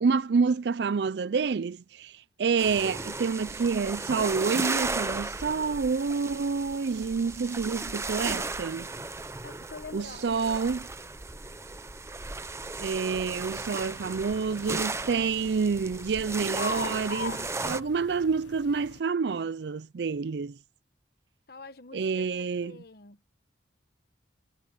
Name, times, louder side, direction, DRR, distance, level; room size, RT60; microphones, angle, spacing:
voice 1, 0.0-8.9 9.9-10.9 12.8-20.6 21.9-22.8, right 5 dB, 70° right, 0.4 m, -28 dB
sound 1, 2.6-17.8, right 3 dB, 15° right, 0.7 m, -35 dB
voice 2, 9.4-10.4 21.5-23.2, left 3 dB, 55° left, 1.2 m, -46 dB
sound 2, 13.1-19.0, left 7 dB, 75° left, 0.4 m, -42 dB
head